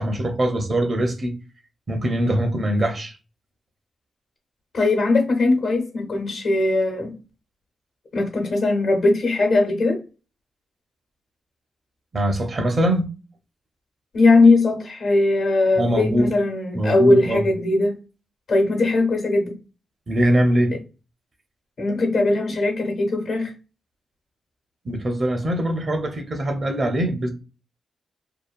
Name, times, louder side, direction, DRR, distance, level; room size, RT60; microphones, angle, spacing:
voice 1, 0.0-1.3 1.9-3.2 12.1-13.1 15.8-16.3 16.7-17.5 20.1-20.7 24.8-27.3, right 1 dB, 50° right, 0.7 m, -22 dB
voice 2, 4.7-7.2 8.1-10.0 14.1-18.0 18.5-19.6 20.7-20.8 21.8-23.5, left 2 dB, 70° left, 1.0 m, -19 dB
2.8 x 2.3 x 2.4 m
supercardioid pair, 50°, 0 cm